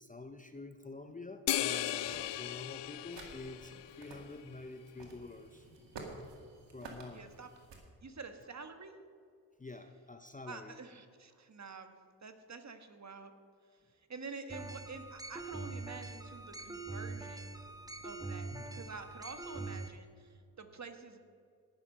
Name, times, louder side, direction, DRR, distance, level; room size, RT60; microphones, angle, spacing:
voice 1, 0.0-5.7 6.7-7.2 9.6-10.8 18.5-18.8, left 3 dB, 20° left, 8 dB, 0.8 m, -47 dB
sound 1, 1.5-4.2, left 14 dB, 70° left, 0.6 m, -36 dB
sound 2, 1.6-7.8, right 3 dB, 70° right, 2.3 m, -52 dB
voice 2, 7.1-7.5 8.0-9.0 10.5-11.9 12.2-13.3 14.1-17.6 18.0-21.2, right 4 dB, 40° right, 8 dB, 1.5 m, -48 dB
sound 3, 14.5-19.9, right 3 dB, 10° right, 1.2 m, -43 dB
18.0 x 7.0 x 5.6 m, 2.1 s
supercardioid pair, 50°, 44 cm